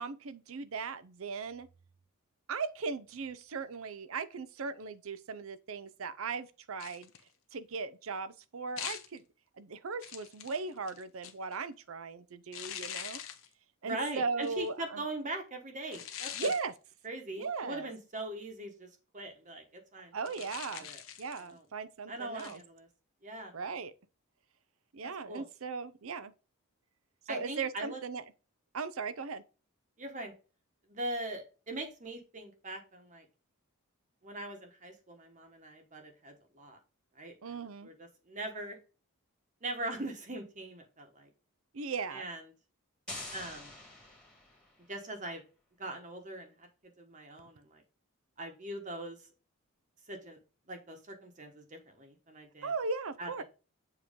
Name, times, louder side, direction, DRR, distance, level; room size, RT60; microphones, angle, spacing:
voice 1, 0.0-1.7 2.5-7.1 7.5-9.2 9.6-13.2 13.8-15.0 16.3-16.7 17.4-17.9 20.1-20.9 21.2-22.6 23.5-23.9 24.9-26.3 27.3-28.2 28.7-29.4 37.4-37.9 41.7-42.2 52.6-53.4, right 4 dB, 70° right, 0.6 m, -38 dB
sound 1, 6.8-7.3 8.8-9.2 10.0-11.6 12.5-13.5 14.4-14.7 15.9-16.6 20.2-21.5 22.4-22.6, left 10 dB, 65° left, 0.8 m, -43 dB
voice 2, 13.8-16.5 17.0-18.9 19.1-20.1 20.7-21.0 21.5-21.6 22.1-22.9 23.2-23.5 25.3-25.4 27.3-28.0 30.0-30.3 30.9-33.2 34.2-36.8 37.1-38.8 39.6-41.3 42.1-42.4 43.3-43.7 44.9-45.4 45.8-46.7 47.0-47.8 48.4-49.2 50.1-50.4 50.7-52.7 53.2-53.3, right 2 dB, 35° right, 1.2 m, -41 dB
sound 2, 43.1-44.9, left 2 dB, 5° left, 1.8 m, -45 dB
7.3 x 3.1 x 5.1 m
head